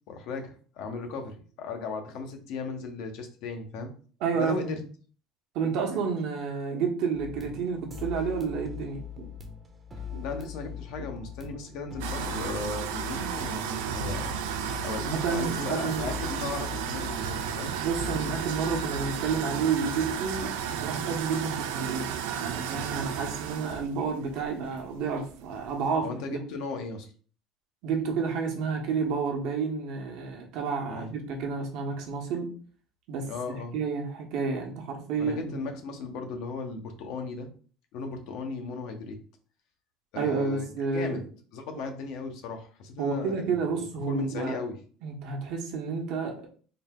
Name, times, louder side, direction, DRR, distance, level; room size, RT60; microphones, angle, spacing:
voice 1, 0.1-3.9 4.3-4.8 10.2-14.3 14.8-17.7 26.0-27.1 30.9-31.1 33.3-33.8 35.2-37.5 37.9-39.2 40.1-40.6 40.9-41.2 41.5-44.8, left 4 dB, 65° left, 5 dB, 0.8 m, -36 dB
voice 2, 4.2-4.8 5.5-9.3 10.1-10.2 14.9-16.2 17.8-26.4 27.8-32.5 33.1-35.5 40.1-41.2 43.0-44.6 45.0-46.5, right 5 dB, 65° right, 2 dB, 0.9 m, -30 dB
sound 1, 7.1-19.4, left 8 dB, 20° right, 0.7 m, -41 dB
sound 2, 12.0-26.0, right 9 dB, 90° right, 0.3 m, -34 dB
3.8 x 2.1 x 3.6 m, 0.42 s
cardioid pair, 130°, 0 cm